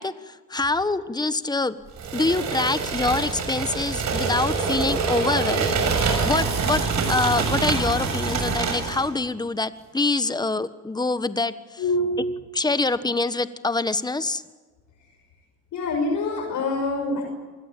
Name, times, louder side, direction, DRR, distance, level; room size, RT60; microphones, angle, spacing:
voice 1, 0.0-1.7 2.1-5.7 6.2-6.8 7.1-11.5 12.5-14.4, left 3 dB, 15° left, 13 dB, 1.4 m, -25 dB
sound 1, 2.0-9.1, right 4 dB, 65° right, 6.7 m, -25 dB
voice 2, 11.8-12.1 15.7-17.3, left 2 dB, 75° left, 3 dB, 5.9 m, -25 dB
27.5 x 21.0 x 9.0 m, 1.3 s
cardioid pair, 90°, 30 cm